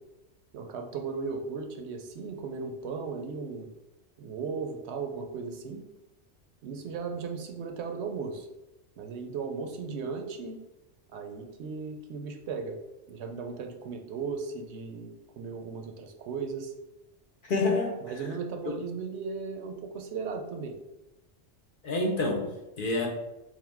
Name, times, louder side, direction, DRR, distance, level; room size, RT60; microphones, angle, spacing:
voice 1, 0.5-3.7 4.2-5.9 6.6-8.5 9.0-10.6 11.1-12.8 13.1-16.7 18.0-20.8, right 5 dB, 75° right, 4 dB, 0.8 m, -36 dB
voice 2, 17.4-18.0 21.8-23.1, left 2 dB, 55° left, 1 dB, 0.7 m, -28 dB
3.6 x 2.6 x 3.4 m, 0.99 s
omnidirectional pair, 1.2 m